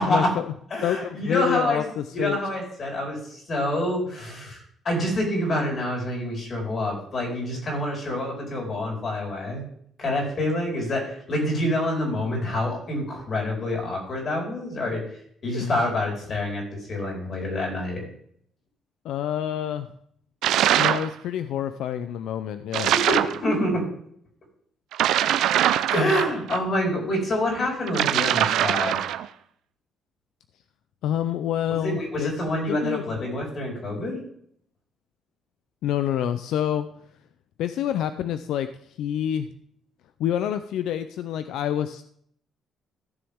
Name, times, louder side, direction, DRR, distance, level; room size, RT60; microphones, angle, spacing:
voice 1, 0.0-0.5 0.8-2.4 15.5-15.7 19.0-19.9 20.8-22.9 31.0-32.3 32.7-33.1 35.8-36.9 37.6-38.7 39.0-39.5 40.2-42.0, left 10 dB, 80° left, 11 dB, 0.5 m, -27 dB
voice 2, 0.7-1.8 2.1-9.6 10.0-15.0 15.4-18.0 22.8-23.8 25.9-29.0 31.8-34.2, left 1 dB, 35° left, -1 dB, 4.5 m, -27 dB
sound 1, 20.4-21.1 22.7-23.4 24.9-26.6 27.9-29.3, right 11 dB, 85° right, 0.6 m, -22 dB
15.5 x 7.1 x 3.6 m, 0.66 s
cardioid pair, 160°, 0 cm